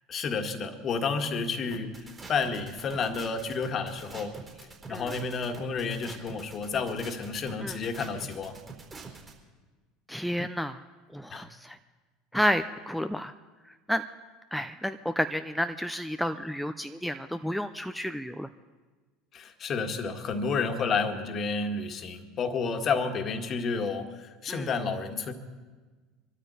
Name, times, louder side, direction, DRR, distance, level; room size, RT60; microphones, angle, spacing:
voice 1, 0.1-4.4 4.9-8.6 11.3-11.5 19.3-25.3, left 5 dB, 40° left, 7 dB, 1.8 m, -31 dB
sound 1, 1.7-9.3, right 4 dB, 25° right, 4.1 m, -45 dB
voice 2, 10.1-10.8 11.1-11.8 12.3-13.3 13.9-14.0 14.5-18.5 24.5-24.7, equal, ahead, 8 dB, 0.6 m, -31 dB
24.5 x 13.0 x 4.2 m, 1.3 s
hypercardioid pair, 75°, 0 cm